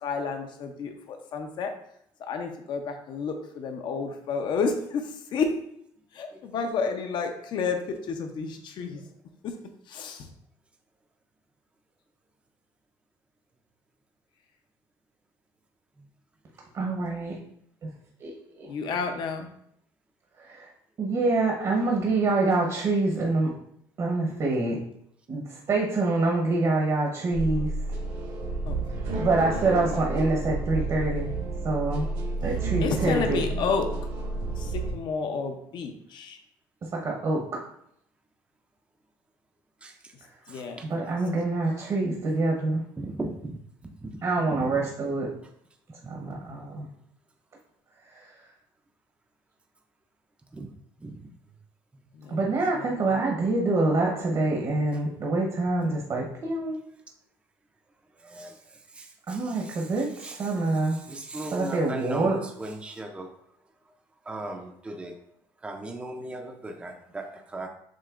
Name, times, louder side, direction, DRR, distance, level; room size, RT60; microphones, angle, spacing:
voice 1, 0.0-1.7 2.2-5.5 6.1-9.0 9.9-10.3 18.7-19.5 28.7-28.8 32.8-33.9 34.6-36.4 40.5-41.2 52.1-52.4 52.8-53.2, left 5 dB, 60° left, 5 dB, 0.6 m, -31 dB
voice 2, 16.7-17.4 18.2-18.3 18.6-18.7 20.5-20.7 21.0-23.5 24.0-24.8 25.3-27.7 29.2-31.3 31.6-32.1 32.4-33.4 36.9-37.6 40.8-42.8 44.2-45.3 46.1-46.9 48.1-48.3 52.3-56.8 59.3-60.1 60.4-61.0 61.5-62.4, right 2 dB, 45° right, -1 dB, 0.9 m, -26 dB
sound 1, 27.3-34.9, right 2 dB, 75° right, 1.4 m, -31 dB
voice 3, 40.5-40.9 43.0-43.6 44.0-44.1 44.5-44.8 50.5-50.7 51.0-51.1 58.2-58.6 59.0-59.9 60.2-60.5 60.9-63.3 64.3-65.2 65.6-67.7, right 2 dB, 15° right, 4 dB, 0.5 m, -38 dB
7.4 x 2.9 x 2.4 m, 0.70 s
cardioid pair, 115°, 9 cm